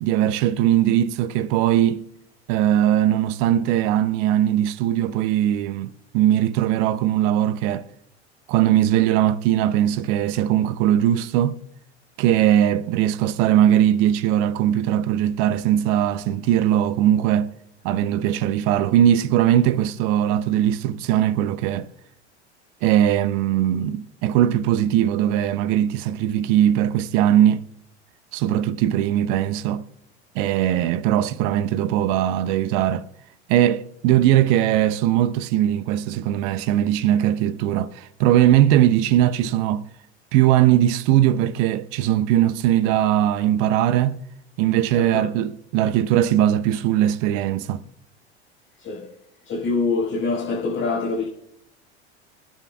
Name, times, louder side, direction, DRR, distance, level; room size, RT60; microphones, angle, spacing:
voice 1, 0.0-2.0 2.5-7.9 8.5-11.6 12.2-17.5 17.8-21.9 22.8-27.6 28.3-29.8 30.3-33.1 33.5-39.8 40.3-44.2 44.6-47.8, right 11 dB, 50° right, 0.8 m, -20 dB
voice 2, 44.9-45.3 48.8-49.1 49.4-51.3, left 3 dB, 35° left, 5.6 m, -25 dB
28.0 x 10.0 x 2.4 m
figure-of-eight pair, 80°, 34 cm